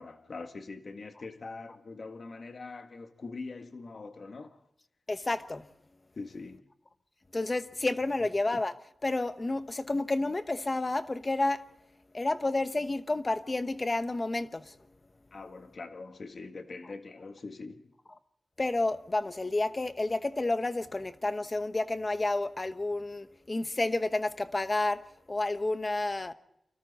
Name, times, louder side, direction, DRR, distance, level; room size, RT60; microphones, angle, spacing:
voice 1, 0.0-4.7 6.1-6.7 15.3-17.9, left 3 dB, 45° left, 1.7 m, -43 dB
voice 2, 5.1-5.7 7.3-8.8 9.0-11.6 12.1-14.8 18.6-25.0 25.3-26.3, left 2 dB, 25° left, 1.0 m, -30 dB
30.0 x 24.5 x 4.2 m
wide cardioid pair, 170°, 0 cm